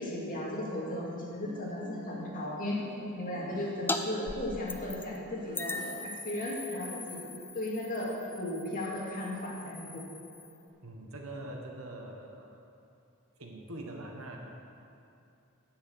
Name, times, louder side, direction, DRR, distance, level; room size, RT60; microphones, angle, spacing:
voice 1, 0.0-2.8 3.1-7.2 7.5-8.1 8.4-10.0, left 1 dB, 40° left, -4 dB, 2.3 m, -36 dB
Guitar, 1.2-6.6, left 1 dB, 25° right, 1.0 m, -51 dB
sound 1, 3.9-4.0 4.3-5.2 5.5-10.6, left 3 dB, 10° left, 0.5 m, -40 dB
voice 2, 10.8-12.7 13.4-14.4, right 1 dB, 70° right, 1 dB, 1.5 m, -43 dB
10.0 x 6.6 x 8.0 m, 2.6 s
head